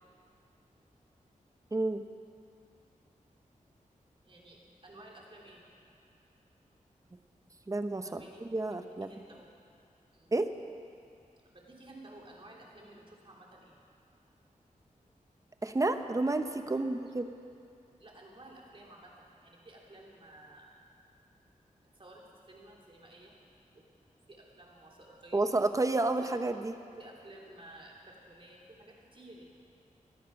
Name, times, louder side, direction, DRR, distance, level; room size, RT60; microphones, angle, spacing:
voice 1, 1.7-2.1 7.7-9.1 10.3-10.5 15.6-17.2 25.3-26.7, right 2 dB, 25° right, 8 dB, 0.8 m, -30 dB
voice 2, 4.2-5.6 8.0-8.4 8.7-9.5 10.1-10.3 11.5-13.8 16.7-16.9 18.0-20.8 21.9-23.4 23.7-23.8 24.3-25.4 26.2-26.3 27.0-29.4, right 1 dB, 40° right, -2 dB, 3.0 m, -53 dB
18.5 x 12.5 x 5.8 m, 2.5 s
wide cardioid pair, 95°, 14 cm